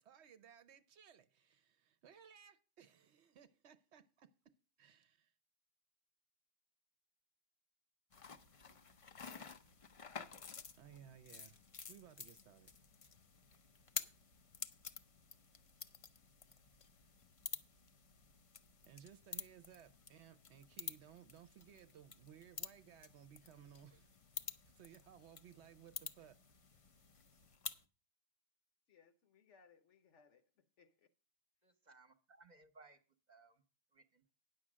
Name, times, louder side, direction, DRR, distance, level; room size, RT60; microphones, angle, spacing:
voice 1, 0.0-5.3 10.7-12.7 18.9-24.2 24.5-26.4, right 9 dB, 65° right, 0.9 m, -60 dB
sound 1, 8.1-27.8, left 5 dB, 40° left, 0.5 m, -51 dB
voice 2, 28.9-31.1, left 5 dB, 70° left, 1.2 m, -68 dB
voice 3, 31.6-33.0 33.3-33.6 33.9-34.3, right 3 dB, 40° right, 1.0 m, -63 dB
9.8 x 6.6 x 6.1 m
omnidirectional pair, 1.3 m